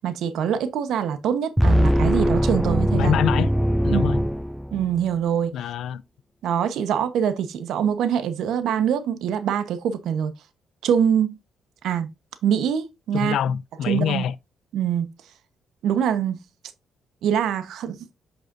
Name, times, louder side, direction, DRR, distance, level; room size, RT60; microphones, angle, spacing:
voice 1, 0.0-3.2 3.9-4.3 4.7-5.5 6.4-10.3 10.8-11.4 11.8-12.1 12.4-13.4 13.9-14.3 14.7-15.1 15.8-16.4 17.2-18.0, right 8 dB, 80° right, 1.0 m, -24 dB
sound 1, 1.6-5.0, equal, ahead, 0.3 m, -21 dB
voice 2, 2.9-3.5 3.8-4.2 5.5-6.0 13.1-14.3, left 9 dB, 75° left, 0.4 m, -25 dB
8.1 x 6.4 x 2.6 m
cardioid pair, 90°, 0 cm